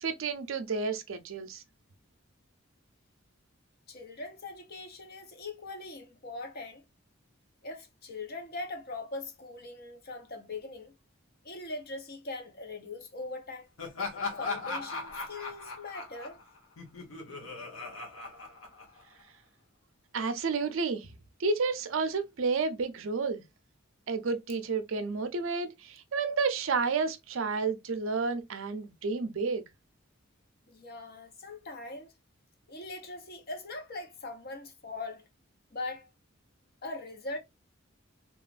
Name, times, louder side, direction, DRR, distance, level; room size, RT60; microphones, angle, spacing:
voice 1, 0.0-1.6 20.1-21.1 21.4-23.4 24.1-29.6, right 4 dB, 75° right, 0.5 m, -31 dB
voice 2, 3.9-6.8 7.6-10.9 11.4-13.7 14.4-16.4 19.1-19.3 30.7-32.1 32.7-35.3 35.7-36.1 36.8-37.4, left 2 dB, 50° left, 0.7 m, -41 dB
Laughter, 13.8-19.2, left 3 dB, 85° left, 0.9 m, -38 dB
2.9 x 2.4 x 2.3 m
head